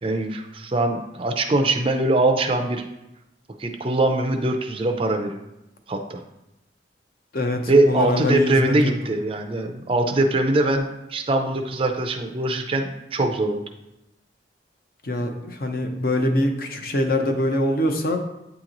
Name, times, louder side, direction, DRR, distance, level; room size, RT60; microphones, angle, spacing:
voice 1, 0.0-2.9 3.6-5.4 5.9-6.2 7.7-13.6, right 2 dB, 30° right, 5 dB, 0.4 m, -22 dB
voice 2, 7.3-8.9 15.0-18.2, left 1 dB, 50° left, 4 dB, 0.6 m, -23 dB
8.8 x 3.0 x 3.8 m, 0.92 s
head